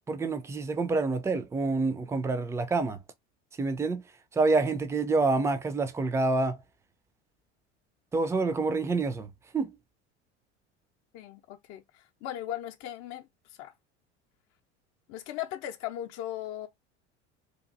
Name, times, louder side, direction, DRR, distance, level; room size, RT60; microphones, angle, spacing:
voice 1, 0.1-3.0 3.6-4.0 4.3-6.6 8.1-9.7, right 3 dB, 10° right, 0.4 m, -27 dB
voice 2, 11.1-13.7 15.1-16.7, left 12 dB, 50° left, 0.6 m, -38 dB
2.9 x 2.5 x 2.5 m
hypercardioid pair, 75°, 35 cm